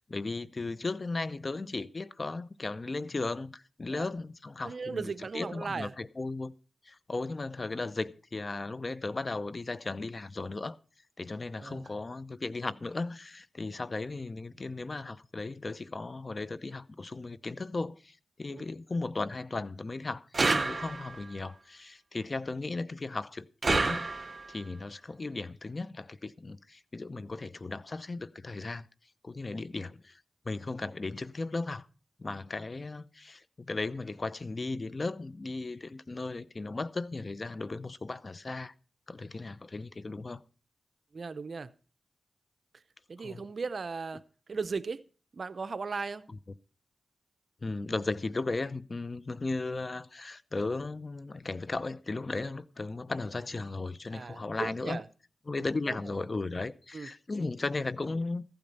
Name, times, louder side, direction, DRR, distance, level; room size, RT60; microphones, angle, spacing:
voice 1, 0.0-6.5 6.8-10.8 11.2-24.1 24.5-28.9 29.2-31.9 32.2-38.7 39.1-40.4 43.2-43.5 47.6-55.0 55.5-58.4, left 3 dB, 40° left, 0.7 m, -36 dB
voice 2, 4.6-5.9 11.6-11.8 18.5-18.6 41.1-41.7 43.1-44.2 44.5-45.0 45.3-46.3 52.4-52.5 54.1-55.1 55.6-56.0 56.9-57.1, right 4 dB, 60° right, 0.7 m, -37 dB
sound 1, 20.3-21.3 23.6-24.6, right 3 dB, 40° right, 1.1 m, -29 dB
14.5 x 8.8 x 5.4 m
cardioid pair, 60°, 0 cm